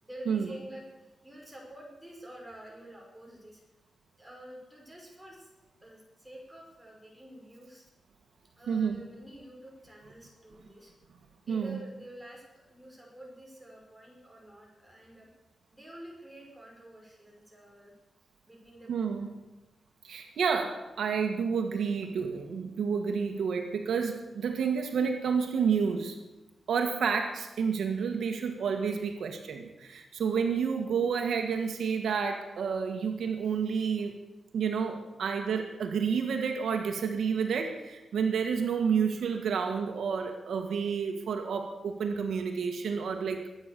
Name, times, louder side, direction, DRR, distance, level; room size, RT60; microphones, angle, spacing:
voice 1, 0.0-3.6 4.2-5.5 5.8-7.9 8.6-10.9 11.4-15.3 15.7-17.9 18.4-19.3, right 1 dB, 5° right, -2 dB, 5.8 m, -49 dB
voice 2, 8.7-9.0 11.5-11.8 18.9-19.3 20.0-26.2 26.7-34.1 34.5-43.4, right 6 dB, 85° right, 5 dB, 1.8 m, -30 dB
22.5 x 9.1 x 6.9 m, 1.0 s
wide cardioid pair, 125°, 0 cm